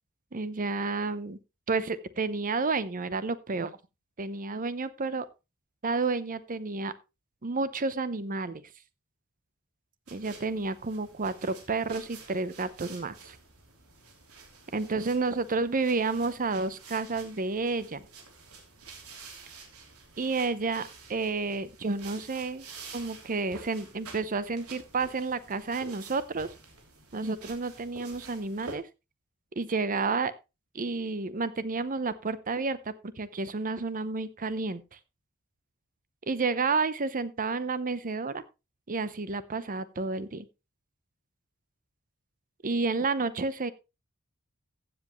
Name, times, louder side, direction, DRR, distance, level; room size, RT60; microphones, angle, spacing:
voice 1, 0.3-1.4 1.7-3.7 4.2-5.3 5.8-6.9 7.4-8.6 10.1-13.4 14.7-18.0 20.2-22.6 22.9-26.5 27.1-28.8 29.6-30.3 30.7-34.8 36.3-38.4 38.9-40.5 42.6-43.7, right 3 dB, 40° right, 15 dB, 0.7 m, -30 dB
sound 1, 10.1-28.8, right 4 dB, 85° right, 3.1 m, -49 dB
15.0 x 7.7 x 3.1 m, 0.27 s
head